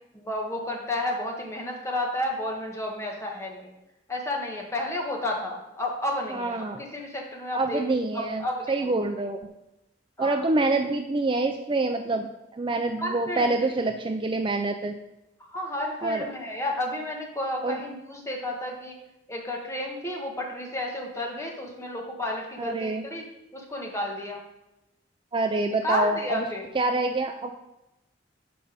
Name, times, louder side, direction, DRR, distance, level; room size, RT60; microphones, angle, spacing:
voice 1, 0.1-3.7 4.1-7.8 8.1-8.9 10.2-10.7 13.0-13.7 15.4-19.0 19.3-23.3 23.5-24.4 25.8-26.7, left 1 dB, 15° left, 0 dB, 1.4 m, -32 dB
voice 2, 6.3-6.8 7.5-9.4 10.2-15.0 16.0-16.3 17.6-17.8 22.6-23.0 25.3-26.5 26.7-27.5, right 2 dB, 25° right, 6 dB, 0.4 m, -26 dB
6.8 x 5.3 x 5.1 m, 0.95 s
head